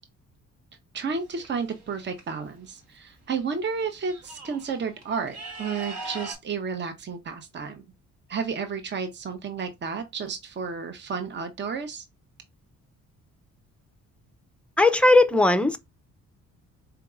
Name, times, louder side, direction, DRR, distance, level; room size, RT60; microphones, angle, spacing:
voice 1, 0.9-7.8 8.3-12.0, right 5 dB, 35° right, 0.8 m, -32 dB
sound 1, 1.1-2.2 3.4-3.5 3.8-6.3, right 2 dB, 60° right, 1.3 m, -41 dB
voice 2, 14.8-15.8, left 2 dB, 5° left, 0.5 m, -18 dB
4.6 x 2.8 x 2.4 m
cardioid pair, 90°, 30 cm